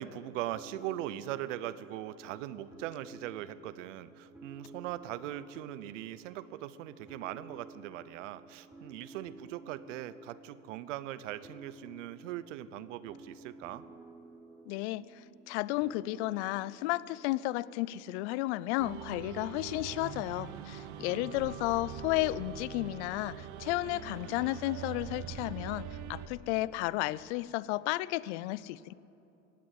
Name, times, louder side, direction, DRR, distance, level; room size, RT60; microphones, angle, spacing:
voice 1, 0.0-13.9 21.1-21.6, right 13 dB, 75° right, 16 dB, 0.8 m, -40 dB
sound 1, 0.5-18.0, right 2 dB, 5° right, 1.1 m, -54 dB
voice 2, 14.7-15.1 15.5-28.9, left 18 dB, 65° left, 20 dB, 0.5 m, -33 dB
sound 2, 18.8-26.3, right 8 dB, 50° right, 1.1 m, -43 dB
16.0 x 8.7 x 9.3 m, 2.9 s
supercardioid pair, 110°, 37 cm